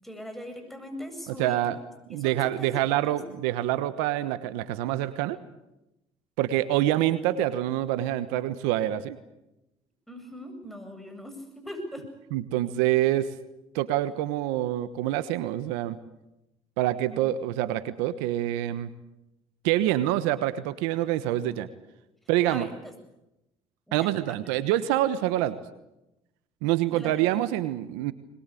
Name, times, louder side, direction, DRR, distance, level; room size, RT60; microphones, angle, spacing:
voice 1, 0.0-1.6 2.1-3.2 10.1-12.1 17.1-17.2 22.5-22.7 23.9-24.1 26.9-27.1, equal, ahead, 5 dB, 7.8 m, -40 dB
voice 2, 1.4-1.8 2.1-5.4 6.4-9.2 12.3-13.3 13.7-16.0 16.8-18.9 19.6-21.7 22.3-22.7 23.9-25.6 26.6-28.1, right 13 dB, 85° right, 14 dB, 1.2 m, -26 dB
21.5 x 21.5 x 8.5 m, 0.92 s
supercardioid pair, 65°, 14 cm